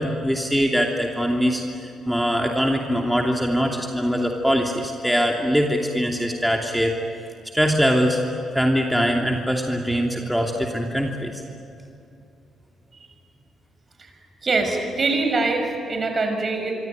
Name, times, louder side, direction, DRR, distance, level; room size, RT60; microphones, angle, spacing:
voice 1, 0.0-6.9 7.5-8.2 8.5-11.4, equal, ahead, 1 dB, 2.8 m, -22 dB
voice 2, 14.4-16.7, right 3 dB, 40° right, 5 dB, 6.4 m, -23 dB
25.5 x 25.0 x 9.4 m, 2.7 s
hypercardioid pair, 45°, 0 cm